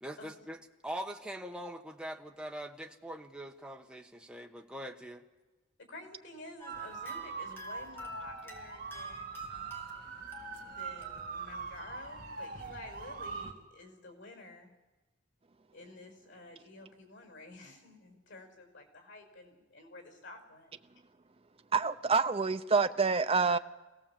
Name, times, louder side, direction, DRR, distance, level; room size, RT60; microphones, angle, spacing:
voice 1, 0.0-5.2, equal, 5° right, 1.3 m, -42 dB
voice 2, 5.9-10.3 10.6-14.7 15.7-20.7, left 2 dB, 85° left, 5.1 m, -51 dB
sound 1, 6.6-11.7, left 1 dB, 10° left, 3.0 m, -50 dB
sound 2, 6.7-13.5, right 5 dB, 50° right, 2.0 m, -42 dB
voice 3, 21.7-23.6, right 4 dB, 30° right, 0.7 m, -27 dB
25.0 x 17.5 x 7.3 m
head